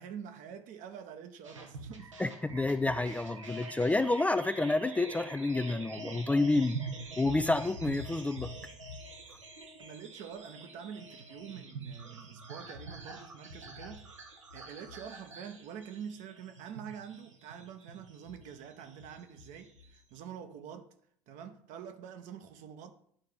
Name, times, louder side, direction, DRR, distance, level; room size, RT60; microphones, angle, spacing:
voice 1, 0.0-2.6 9.8-14.1 14.5-20.9 21.3-22.9, right 8 dB, 55° right, 1.1 m, -46 dB
sound 1, 1.4-20.2, right 2 dB, 85° right, 1.3 m, -46 dB
voice 2, 2.2-6.8 7.2-8.5, left 2 dB, 10° left, 0.4 m, -29 dB
10.5 x 4.6 x 5.2 m
figure-of-eight pair, 70°, 16 cm